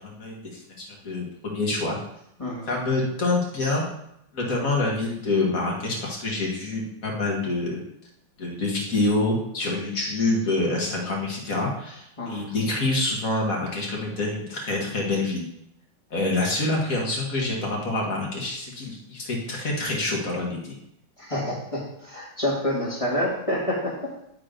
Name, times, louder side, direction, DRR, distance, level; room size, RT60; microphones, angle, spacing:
voice 1, 0.0-2.0 2.7-3.8 4.3-7.8 8.4-15.4 16.1-20.8, left 2 dB, 50° left, -1 dB, 2.1 m, -26 dB
voice 2, 2.4-2.8 12.2-12.5 21.2-24.1, left 1 dB, 20° left, -3 dB, 1.7 m, -28 dB
10.5 x 4.4 x 5.1 m, 0.77 s
omnidirectional pair, 2.0 m